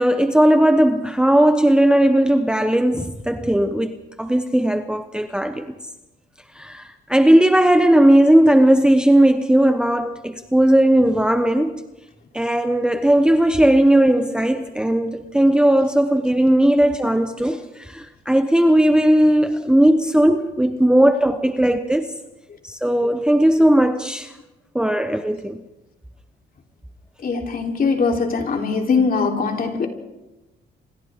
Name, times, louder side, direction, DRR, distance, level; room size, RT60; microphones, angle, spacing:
voice 1, 0.0-5.7 6.5-11.8 12.3-22.1 22.6-24.3 24.7-25.6, right 1 dB, 5° right, 1.1 m, -17 dB
voice 2, 27.2-29.9, left 4 dB, 45° left, 3.6 m, -21 dB
27.0 x 26.5 x 3.7 m
cardioid pair, 90°, 20 cm